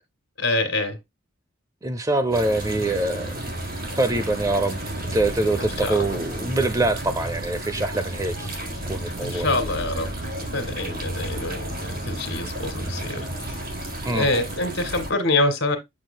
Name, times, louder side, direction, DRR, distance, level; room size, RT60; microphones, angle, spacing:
voice 1, 0.4-1.0 5.6-6.1 9.2-11.6 11.9-13.6 14.1-15.8, left 2 dB, 65° left, 2.1 m, -26 dB
voice 2, 1.8-3.5 4.0-4.8 5.0-8.5 8.9-9.5 14.0-14.3, right 2 dB, 15° right, 0.5 m, -24 dB
sound 1, 2.3-15.1, right 1 dB, 50° right, 4.3 m, -32 dB
7.7 x 6.8 x 2.2 m
head